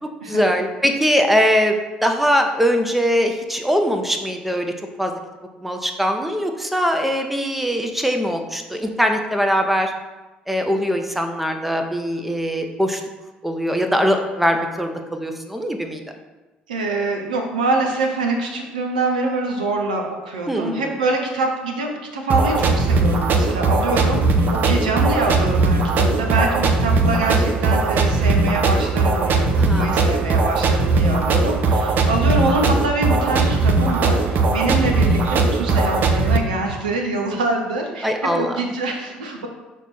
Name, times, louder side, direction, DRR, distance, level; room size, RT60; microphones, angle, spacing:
voice 1, 0.0-5.2 5.6-9.9 10.5-13.0 13.4-16.0 20.5-20.9 29.6-30.2 38.0-38.6, equal, 5° right, 4 dB, 0.8 m, -21 dB
voice 2, 16.7-39.5, right 2 dB, 75° right, 2 dB, 0.8 m, -25 dB
sound 1, 22.3-36.4, right 3 dB, 45° right, 0.7 m, -18 dB
6.1 x 4.5 x 4.3 m, 1.1 s
figure-of-eight pair, 55°, 4 cm